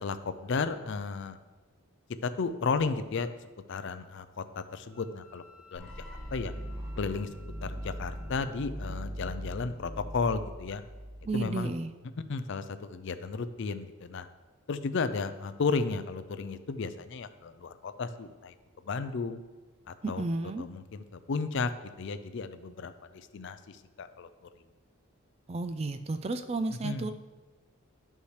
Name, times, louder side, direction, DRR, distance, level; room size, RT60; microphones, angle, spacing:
voice 1, 0.0-1.4 2.2-3.3 3.7-5.4 5.7-5.9 6.3-6.5 7.0-7.3 7.6-10.8 11.3-11.7 12.3-14.3 14.7-18.5 18.8-19.4 19.9-20.2 20.6-21.7 22.0-24.3 26.7-27.1, left 4 dB, 55° left, 11 dB, 0.4 m, -33 dB
Wind instrument woodwind instrument, 4.9-8.7, left 2 dB, 85° right, 1.7 m, -57 dB
sound 1, 5.7-11.7, equal, 5° left, 1.4 m, -40 dB
voice 2, 11.3-11.9 20.0-20.7 25.5-27.1, right 3 dB, 30° right, 10 dB, 0.3 m, -32 dB
11.5 x 5.5 x 3.3 m, 1.2 s
head